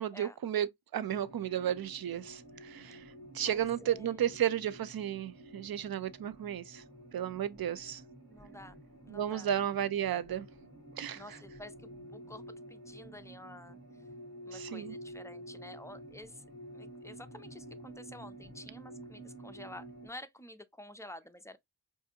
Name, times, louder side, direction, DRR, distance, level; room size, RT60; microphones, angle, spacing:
voice 1, 0.0-3.0 3.3-6.8 7.1-8.0 9.1-10.5 11.0-11.2 14.5-15.0, right 10 dB, 60° right, 0.5 m, -33 dB
sound 1, 1.0-20.1, right 1 dB, 45° right, 2.3 m, -50 dB
voice 2, 3.5-4.2 8.3-8.8 9.0-9.5 11.1-12.4 12.7-13.8 14.5-16.4 16.7-21.6, left 1 dB, 10° left, 0.4 m, -50 dB
4.7 x 2.6 x 2.7 m
wide cardioid pair, 70°, 40 cm